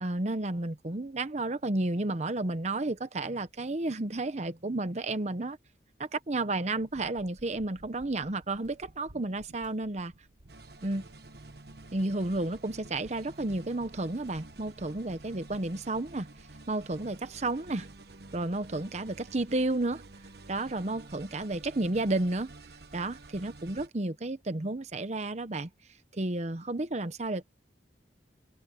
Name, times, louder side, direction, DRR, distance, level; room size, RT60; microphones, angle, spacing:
voice 1, 0.0-5.6 6.0-10.1 10.8-11.0 11.9-16.3 16.7-17.9 18.3-20.0 20.5-22.5 22.9-25.7 26.1-27.4, right 2 dB, 40° right, 0.9 m, -32 dB
sound 1, 6.8-15.6, right 1 dB, 90° right, 1.7 m, -57 dB
sound 2, 10.5-23.9, right 2 dB, 60° right, 1.2 m, -50 dB
head